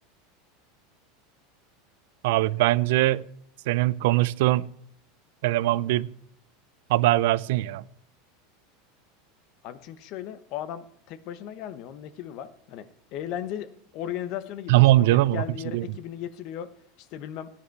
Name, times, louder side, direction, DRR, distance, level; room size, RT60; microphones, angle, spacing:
voice 1, 2.2-3.3 3.7-4.7 5.4-6.1 6.9-7.8 14.7-15.4 15.7-15.8, right 16 dB, 70° right, 0.4 m, -21 dB
voice 2, 9.6-16.7 17.0-17.5, left 10 dB, 45° left, 1.0 m, -36 dB
15.5 x 10.5 x 4.6 m
supercardioid pair, 155°, 0 cm